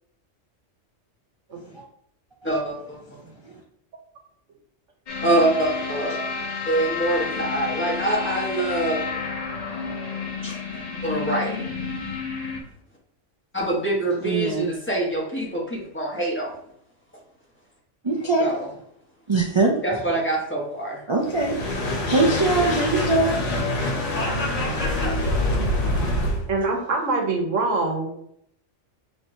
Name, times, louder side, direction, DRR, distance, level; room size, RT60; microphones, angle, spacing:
voice 1, 1.5-1.8 3.2-3.6 6.1-6.2 14.2-14.7 18.0-18.8 19.3-19.7 21.1-23.4, right 3 dB, 50° right, -2 dB, 0.3 m, -23 dB
voice 2, 2.4-3.0 5.2-6.2 6.6-9.0 10.4-10.6 11.0-11.6 13.5-16.5 18.4-18.6 19.8-21.0, right 1 dB, 10° left, -4 dB, 1.2 m, -25 dB
sound 1, 5.1-12.6, left 5 dB, 35° left, 0.8 m, -30 dB
sound 2, 21.2-26.4, left 1 dB, 75° left, 1.3 m, -25 dB
voice 3, 26.5-28.2, right 3 dB, 85° right, 2 dB, 1.2 m, -24 dB
5.6 x 3.0 x 2.7 m, 0.72 s
omnidirectional pair, 1.3 m